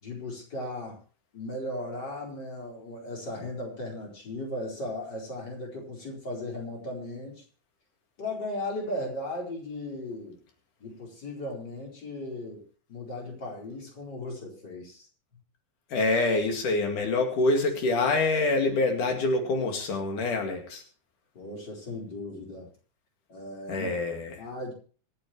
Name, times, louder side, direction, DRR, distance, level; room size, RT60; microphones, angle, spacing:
voice 1, 0.0-1.0 1.3-7.4 8.2-10.4 10.8-12.6 12.9-15.1 21.3-22.7 23.3-23.9 24.4-24.7, left 1 dB, 35° left, -2 dB, 5.0 m, -36 dB
voice 2, 15.9-20.8 23.7-24.4, left 2 dB, 85° left, 3 dB, 3.8 m, -26 dB
26.0 x 8.8 x 3.2 m, 0.40 s
omnidirectional pair, 3.5 m